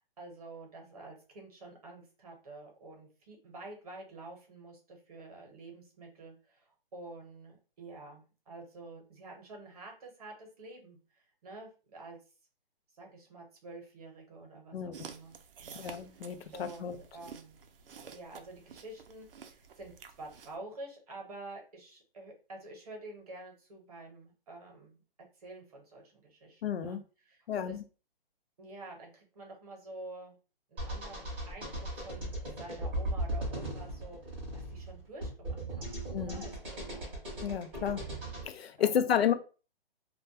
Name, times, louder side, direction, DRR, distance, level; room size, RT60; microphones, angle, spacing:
voice 1, 0.2-12.2 12.9-15.3 15.6-16.2 16.5-17.6 18.1-25.0 25.4-27.8 28.6-30.4 30.7-31.7 31.9-35.9 36.2-37.1 37.4-38.1 38.8-39.3, right 2 dB, 40° right, 0.8 m, -49 dB
sound 1, 14.9-20.6, right 7 dB, 70° right, 0.4 m, -51 dB
voice 2, 15.8-16.9 26.6-27.0 27.5-27.8 36.1-36.4 37.4-38.0 38.4-39.3, left 9 dB, 90° left, 0.5 m, -31 dB
sound 2, 30.8-38.4, right 1 dB, 10° right, 0.6 m, -38 dB
2.2 x 2.2 x 2.6 m
hypercardioid pair, 170°, 30 cm